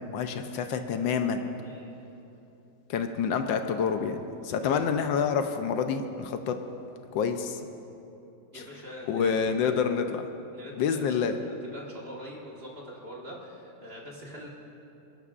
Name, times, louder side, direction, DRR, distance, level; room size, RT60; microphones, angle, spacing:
voice 1, 0.1-1.4 2.9-6.6 7.1-7.6 8.5-8.6 9.1-10.2 10.8-11.4, left 6 dB, 75° left, 7 dB, 1.4 m, -28 dB
voice 2, 1.6-2.0 4.6-4.9 8.5-9.8 10.5-14.5, equal, 30° right, -3 dB, 1.7 m, -44 dB
27.5 x 11.0 x 2.5 m, 2.9 s
omnidirectional pair, 2.1 m